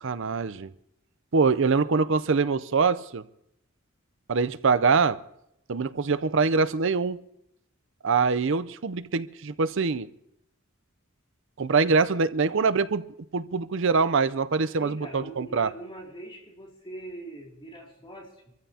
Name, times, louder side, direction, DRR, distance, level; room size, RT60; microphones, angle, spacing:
voice 1, 0.0-0.7 1.3-3.2 4.3-5.2 5.7-7.2 8.0-10.1 11.6-13.1 13.3-15.7, right 4 dB, 65° right, 0.6 m, -24 dB
voice 2, 14.8-18.5, right 1 dB, 25° left, 2.7 m, -42 dB
25.5 x 14.5 x 2.8 m
head